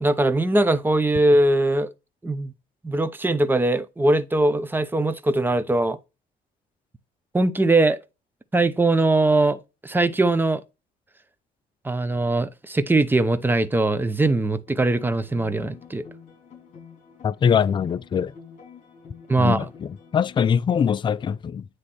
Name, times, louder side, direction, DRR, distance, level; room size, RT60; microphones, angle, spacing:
voice 1, 0.0-1.9 2.2-2.5 2.8-6.0 7.3-8.0 8.5-10.6 11.8-16.0 19.3-19.6, right 2 dB, 10° right, 0.8 m, -21 dB
sound 1, 14.7-20.4, left 6 dB, 45° left, 3.8 m, -47 dB
voice 2, 17.2-18.3 19.4-21.7, left 7 dB, 30° left, 0.4 m, -22 dB
9.5 x 3.2 x 4.3 m
cardioid pair, 110°, 17 cm